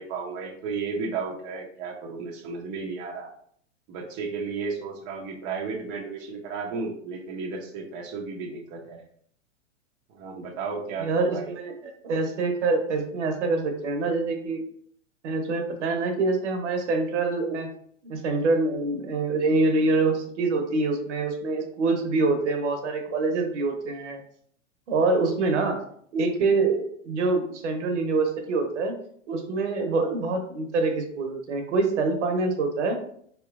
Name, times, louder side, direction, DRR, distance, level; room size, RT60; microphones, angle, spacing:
voice 1, 0.0-3.3 3.9-9.0 10.1-11.5, right 4 dB, 30° right, -1 dB, 0.6 m, -33 dB
voice 2, 11.0-14.6 15.2-17.7 18.0-24.2 24.9-25.8 26.1-28.9 29.3-33.0, right 3 dB, 65° right, 5 dB, 0.9 m, -25 dB
4.3 x 3.0 x 2.3 m, 0.64 s
hypercardioid pair, 120°, 38 cm